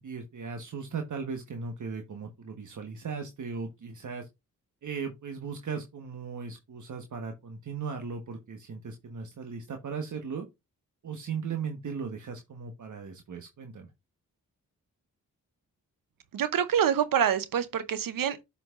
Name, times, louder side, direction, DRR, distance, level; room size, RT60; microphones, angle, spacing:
voice 1, 0.0-4.3 4.8-10.5 11.0-13.9, right 5 dB, 65° right, 1.3 m, -37 dB
voice 2, 16.3-18.4, right 9 dB, 80° right, 0.8 m, -26 dB
7.9 x 5.8 x 2.5 m
cardioid pair, 60°, 33 cm